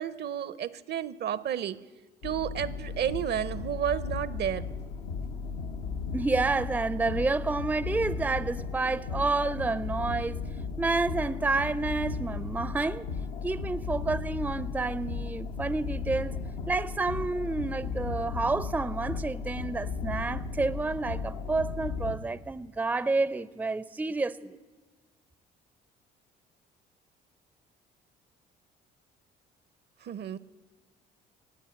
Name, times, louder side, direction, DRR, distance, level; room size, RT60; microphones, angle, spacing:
voice 1, 0.0-1.8 2.2-4.7 30.0-30.4, right 10 dB, 55° right, 0.6 m, -31 dB
sound 1, 2.2-22.1, left 5 dB, 85° left, 0.9 m, -35 dB
voice 2, 6.1-10.4 10.8-13.1 13.4-16.4 16.7-24.6, right 3 dB, 10° right, 0.4 m, -29 dB
19.0 x 8.1 x 7.9 m
supercardioid pair, 65°, 21 cm